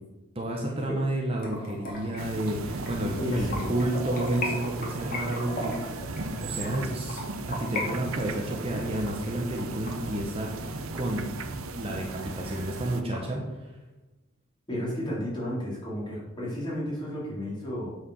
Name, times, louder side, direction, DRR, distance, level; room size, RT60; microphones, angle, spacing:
voice 1, 0.3-6.1 6.4-7.2 7.5-11.3 11.7-13.7, right 1 dB, 30° right, -1 dB, 1.1 m, -31 dB
sound 1, 1.4-7.8 8.2-10.7 11.1-11.2 11.6-11.7 12.0-12.1 12.4-13.2, left 1 dB, 45° left, 2.3 m, -37 dB
sound 2, 2.2-13.0, right 3 dB, 85° right, 0.8 m, -37 dB
voice 2, 3.2-3.7 14.7-17.9, equal, 20° left, -6 dB, 3.4 m, -32 dB
8.7 x 5.0 x 6.4 m, 1.1 s
head